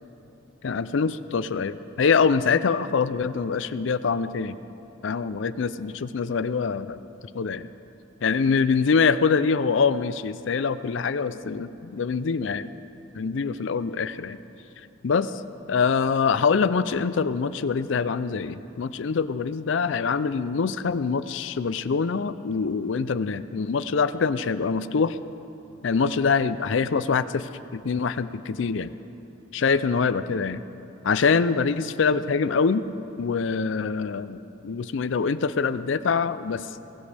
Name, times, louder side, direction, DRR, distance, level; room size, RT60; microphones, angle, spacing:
voice 1, 0.6-4.6 5.0-7.0 7.3-7.7 8.2-12.7 13.1-14.4 15.0-15.3 15.7-25.2 25.8-28.9 29.5-30.6 31.0-32.8 33.2-36.6, left 5 dB, 65° left, 14 dB, 0.4 m, -24 dB
20.0 x 16.0 x 3.4 m, 2.9 s
head